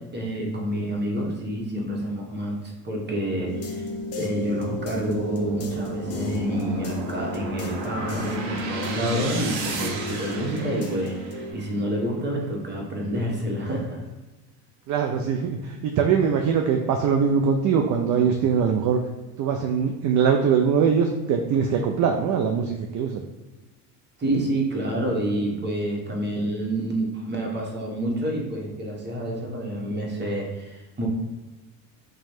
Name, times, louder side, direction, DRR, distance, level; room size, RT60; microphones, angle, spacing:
voice 1, 0.0-2.6 2.8-3.9 4.2-14.0 24.2-31.1, right 1 dB, 20° right, -1 dB, 1.0 m, -28 dB
sound 1, 3.5-11.5, left 2 dB, 30° left, 0.6 m, -33 dB
sound 2, 4.5-11.7, right 4 dB, 70° right, 0.8 m, -35 dB
voice 2, 14.9-19.0 19.4-23.2, right 6 dB, 40° right, 3 dB, 0.4 m, -22 dB
3.0 x 2.3 x 4.3 m, 1.1 s
hypercardioid pair, 80°, 48 cm